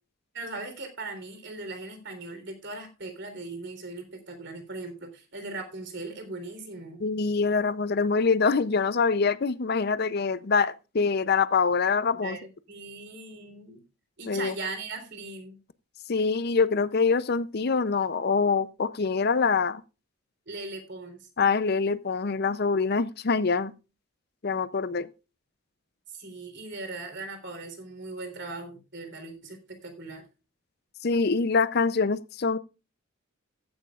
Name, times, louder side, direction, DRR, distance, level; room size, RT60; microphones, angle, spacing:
voice 1, 0.3-7.0 12.2-13.8 14.2-15.6 20.5-21.3 26.1-30.2, right 3 dB, 55° right, 3.6 m, -39 dB
voice 2, 7.0-12.4 14.3-14.5 16.1-19.8 21.4-23.7 24.4-25.1 31.0-32.6, left 4 dB, 50° left, 0.5 m, -25 dB
15.0 x 11.0 x 2.4 m
head